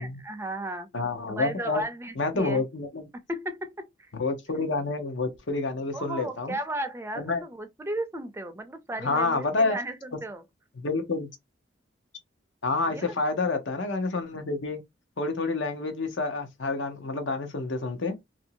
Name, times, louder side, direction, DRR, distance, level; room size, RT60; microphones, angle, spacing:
voice 1, 0.0-0.9 1.3-2.6 3.3-4.1 5.9-10.4 12.8-13.2, right 1 dB, 15° right, 0.4 m, -35 dB
voice 2, 0.9-1.8 2.2-3.1 4.2-6.6 7.2-7.4 9.0-9.8 10.8-11.3 12.6-14.8 15.2-18.2, left 3 dB, 75° left, 0.8 m, -28 dB
2.9 x 2.6 x 2.7 m
head